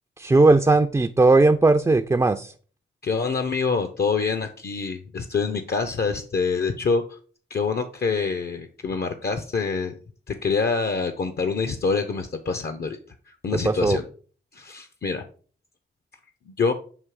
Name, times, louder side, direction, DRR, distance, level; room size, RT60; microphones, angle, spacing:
voice 1, 0.2-2.5 13.6-14.0, right 3 dB, 15° right, 7 dB, 0.3 m, -18 dB
voice 2, 3.0-7.2 7.5-10.0 10.3-13.0 13.3-14.1 14.5-15.2 16.5-16.7, left 4 dB, 55° left, 8 dB, 0.6 m, -26 dB
7.3 x 2.8 x 4.7 m, 0.42 s
wide cardioid pair, 85°, 20 cm